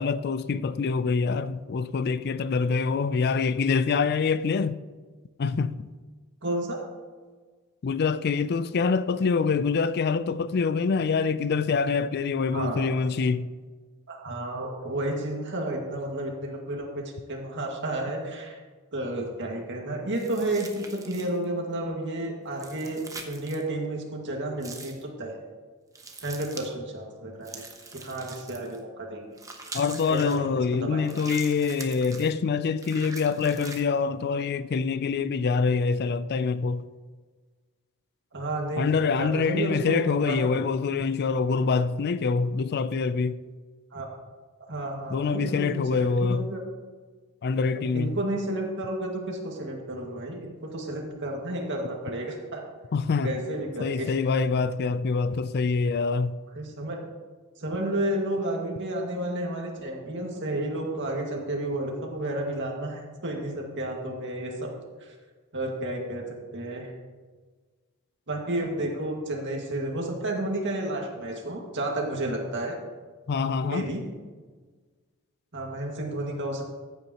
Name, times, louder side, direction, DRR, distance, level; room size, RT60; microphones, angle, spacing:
voice 1, 0.0-4.8 5.4-5.8 7.8-13.5 29.7-36.8 38.8-43.4 45.1-46.5 47.4-48.2 52.9-53.3 53.8-56.4 73.3-73.9, left 5 dB, 50° left, 0.4 m, -25 dB
voice 2, 6.4-6.8 12.5-12.9 14.1-17.0 17.3-18.6 18.9-25.4 26.2-27.6 27.9-29.3 30.1-31.3 38.3-40.6 43.9-44.1 44.7-46.6 47.8-52.7 53.2-54.1 56.6-57.0 57.6-64.7 65.5-66.9 68.3-72.8 73.6-74.0 75.5-76.6, right 1 dB, 55° right, 2.0 m, -31 dB
sound 1, 20.1-21.4 22.5-23.6 24.6-25.0 26.0-26.7 27.4-28.8 29.4-30.4 31.1-32.3 32.8-33.8, right 3 dB, 15° right, 1.0 m, -43 dB
14.5 x 8.5 x 3.0 m
head